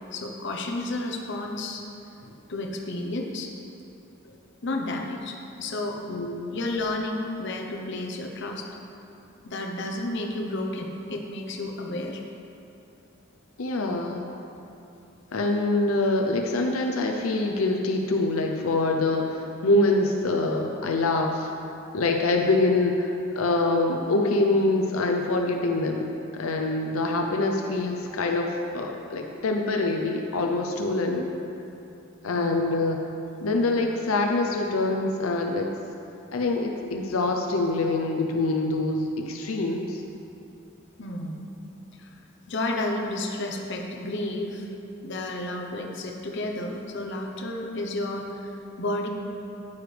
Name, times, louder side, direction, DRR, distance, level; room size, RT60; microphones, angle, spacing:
voice 1, 0.1-1.8 2.2-3.5 4.2-4.3 4.6-6.0 6.5-8.7 9.4-12.2 32.3-32.6 41.0-41.5 42.0-42.1 42.5-44.7 45.0-49.1, left 2 dB, 60° left, 1 dB, 0.9 m, -31 dB
voice 2, 6.1-6.6 13.6-14.3 15.3-21.5 21.9-31.3 32.2-33.0 33.4-35.7 36.3-40.0, left 2 dB, 90° left, 2 dB, 0.7 m, -25 dB
9.7 x 9.6 x 3.4 m, 2.8 s
head